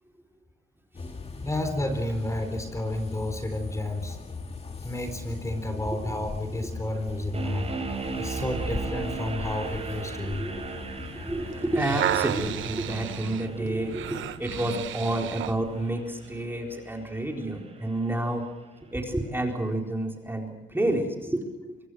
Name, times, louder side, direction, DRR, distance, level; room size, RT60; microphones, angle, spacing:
sound 1, 0.9-15.9, left 4 dB, 30° left, 2.2 m, -40 dB
voice 1, 1.4-4.2 4.8-7.7 8.2-10.7, left 1 dB, 15° left, 6 dB, 4.1 m, -31 dB
sound 2, 7.3-18.4, right 4 dB, 30° right, 7.0 m, -38 dB
voice 2, 11.1-18.4 18.9-21.4, right 1 dB, 10° right, 1 dB, 4.3 m, -29 dB
sound 3, 11.5-15.6 16.3-16.4, right 11 dB, 75° right, 0.9 m, -32 dB
25.0 x 22.5 x 6.5 m, 1.1 s
cardioid pair, 90°, 20 cm